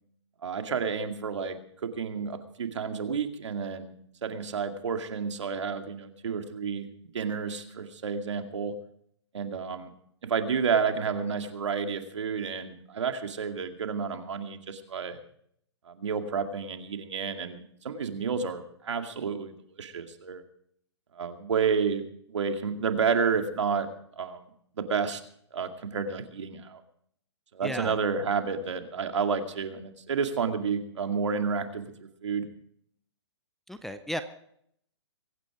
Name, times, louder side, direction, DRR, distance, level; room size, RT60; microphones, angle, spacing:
voice 1, 0.4-3.9 4.2-6.9 7.1-8.7 9.3-9.9 10.2-15.2 15.9-20.4 21.2-23.9 24.2-24.5 24.8-25.2 25.5-26.8 27.5-31.9 32.2-32.5, right 6 dB, 75° right, 6 dB, 2.3 m, -30 dB
voice 2, 27.6-28.0 33.7-34.2, equal, ahead, 10 dB, 0.5 m, -34 dB
23.5 x 9.3 x 4.9 m, 0.68 s
hypercardioid pair, 155°, 15 cm